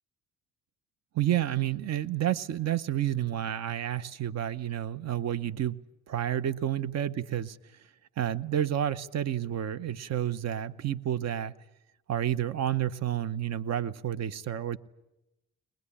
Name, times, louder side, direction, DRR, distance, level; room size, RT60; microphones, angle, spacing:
voice 1, 1.1-5.8 6.1-7.9 8.2-11.5 12.1-14.8, right 11 dB, 60° right, 0.9 m, -30 dB
22.0 x 21.0 x 10.0 m
cardioid pair, 90°, 30 cm